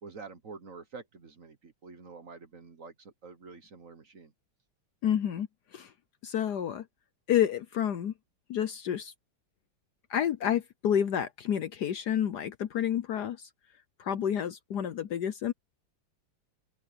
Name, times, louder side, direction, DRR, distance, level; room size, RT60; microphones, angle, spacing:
voice 1, 0.0-4.3, right 4 dB, 45° right, 1.4 m, -47 dB
voice 2, 5.0-5.5 5.7-5.9 6.2-6.8 7.3-8.1 8.5-9.1 10.1-13.5 14.0-15.5, left 9 dB, 60° left, 1.2 m, -29 dB
open air
omnidirectional pair, 2.2 m